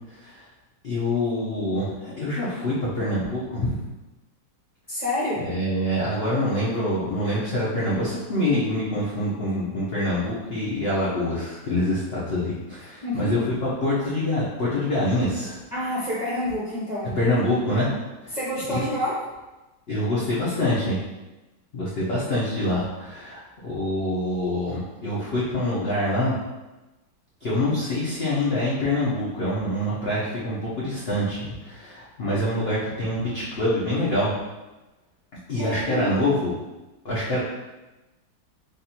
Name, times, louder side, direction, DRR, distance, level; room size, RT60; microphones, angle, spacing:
voice 1, 0.1-0.5 0.8-3.8 5.4-15.6 17.2-17.9 18.2-18.4 18.7-18.9 19.9-21.0 21.7-26.4 27.4-34.3 35.5-36.6 37.0-37.4, left 1 dB, 65° left, -8 dB, 0.6 m, -25 dB
voice 2, 4.9-5.5 13.0-13.4 15.7-17.2 18.3-19.2 35.6-36.2, left 1 dB, 35° right, -9 dB, 0.7 m, -28 dB
5.0 x 2.6 x 2.8 m, 1.1 s
omnidirectional pair, 2.1 m